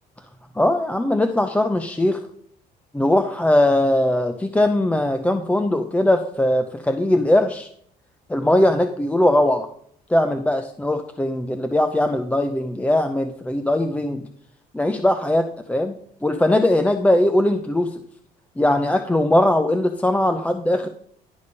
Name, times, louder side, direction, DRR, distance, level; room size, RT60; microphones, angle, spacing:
voice 1, 0.6-2.2 2.9-7.7 8.3-9.7 10.1-14.3 14.7-15.9 16.2-18.0 18.6-20.9, left 1 dB, 10° left, 7 dB, 0.5 m, -20 dB
11.0 x 5.2 x 5.3 m, 0.65 s
cardioid pair, 110°, 17 cm